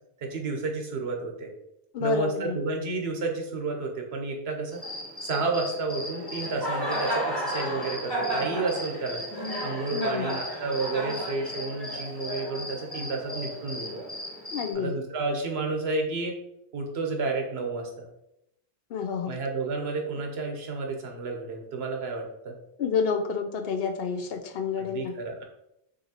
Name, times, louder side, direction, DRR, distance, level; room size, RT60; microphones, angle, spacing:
voice 1, 0.2-1.5 2.0-4.8 5.2-14.0 14.7-16.4 16.7-18.1 19.2-22.6 24.8-25.4, right 3 dB, 80° right, 2 dB, 1.1 m, -31 dB
voice 2, 1.9-2.6 9.9-10.3 14.5-14.9 18.9-19.3 22.8-25.1, left 6 dB, 70° left, 6 dB, 0.8 m, -29 dB
Cricket, 4.7-14.7, equal, 20° left, 1.2 m, -33 dB
6.3 x 2.8 x 2.9 m, 0.82 s
omnidirectional pair, 1.1 m